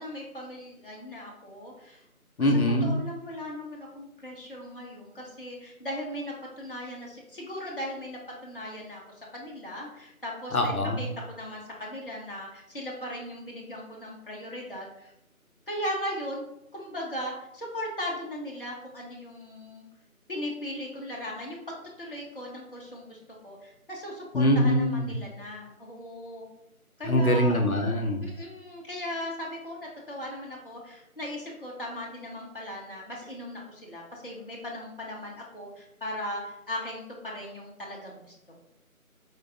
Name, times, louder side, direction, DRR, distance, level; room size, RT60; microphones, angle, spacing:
voice 1, 0.0-2.0 2.8-9.0 9.3-15.1 15.7-16.4 16.7-19.9 20.3-23.2 23.4-26.5 27.0-27.6 28.2-38.3, left 1 dB, 40° left, -3 dB, 0.7 m, -38 dB
voice 2, 2.4-2.9 10.5-11.0 24.3-25.1 27.1-28.3, left 1 dB, 75° left, 3 dB, 0.8 m, -23 dB
4.6 x 2.4 x 3.4 m, 0.81 s
figure-of-eight pair, 165°, 43 cm